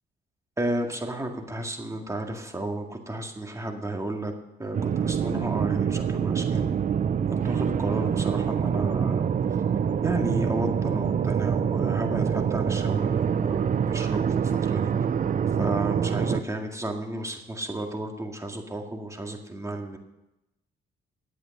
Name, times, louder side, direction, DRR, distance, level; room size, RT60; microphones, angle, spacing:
voice 1, 0.6-4.3 4.6-6.7 7.3-9.3 10.0-14.9 15.6-20.0, right 1 dB, 15° right, 3 dB, 2.0 m, -32 dB
sound 1, 4.7-16.4, right 7 dB, 40° right, 0.5 m, -25 dB
11.0 x 8.5 x 6.6 m, 0.91 s
cardioid pair, 90°, 20 cm